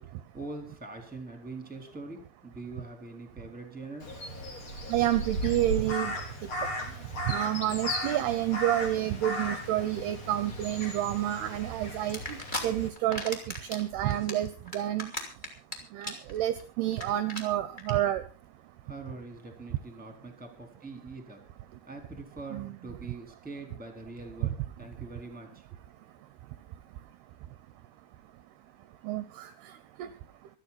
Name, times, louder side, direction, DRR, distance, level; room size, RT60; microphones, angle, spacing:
voice 1, 0.0-4.1 18.8-21.4 21.9-25.6, right 3 dB, ahead, 4 dB, 3.3 m, -43 dB
Crow, 4.0-12.9, equal, 30° left, 3.7 m, -36 dB
voice 2, 4.9-6.2 7.3-12.4 12.6-13.4 13.7-15.1 15.9-18.2 22.5-22.7 29.0-29.5 30.0-30.1, right 13 dB, 75° right, 12 dB, 2.5 m, -29 dB
sound 1, 12.1-12.6 13.0-13.8 14.1-15.7 16.0-16.3 16.6-16.7 16.9-17.0 17.3-17.4 17.8-17.9, left 1 dB, 15° left, 2.1 m, -35 dB
26.0 x 9.4 x 4.2 m, 0.37 s
omnidirectional pair, 5.3 m